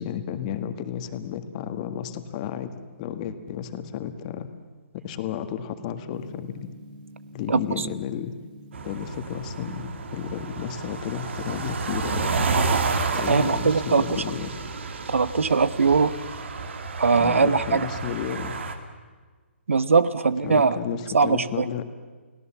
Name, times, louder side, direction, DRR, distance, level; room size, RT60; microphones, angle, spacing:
voice 1, 0.0-2.7 3.0-4.5 5.0-6.5 7.3-8.3 8.8-12.3 13.2-14.6 17.2-18.6 20.4-21.8, left 9 dB, 35° left, 8 dB, 1.8 m, -32 dB
Gong, 6.1-12.0, equal, 40° right, 2.5 m, -48 dB
voice 2, 7.5-7.9 13.3-14.2 15.1-16.2 17.0-17.9 19.7-20.8 21.1-21.7, right 5 dB, 80° right, 16 dB, 1.1 m, -21 dB
sound 1, 8.7-18.8, right 4 dB, 65° right, 2.6 m, -30 dB
30.0 x 18.0 x 7.3 m, 1.4 s
hypercardioid pair, 145°, 7 cm